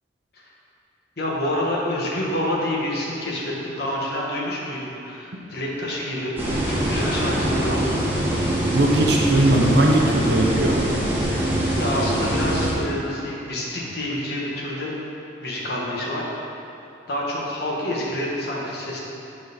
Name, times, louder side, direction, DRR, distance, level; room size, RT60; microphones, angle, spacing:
voice 1, 1.2-6.4 6.7-8.3 11.8-14.9 15.4-16.3 17.1-19.0, left 1 dB, 60° left, -4 dB, 1.4 m, -28 dB
sound 1, 6.4-12.7, right 1 dB, 10° right, 1.2 m, -23 dB
voice 2, 8.7-10.8, right 1 dB, 65° right, -1 dB, 0.9 m, -19 dB
8.1 x 4.3 x 5.2 m, 2.8 s
head